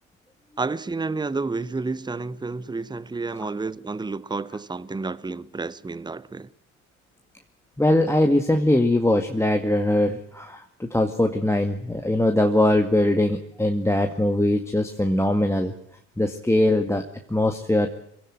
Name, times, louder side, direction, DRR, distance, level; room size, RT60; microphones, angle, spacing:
voice 1, 0.6-6.5, right 3 dB, 10° right, 1.0 m, -30 dB
voice 2, 7.8-15.7 16.2-17.9, left 1 dB, 5° left, 2.1 m, -21 dB
25.5 x 17.0 x 9.1 m
figure-of-eight pair, 60°, 42 cm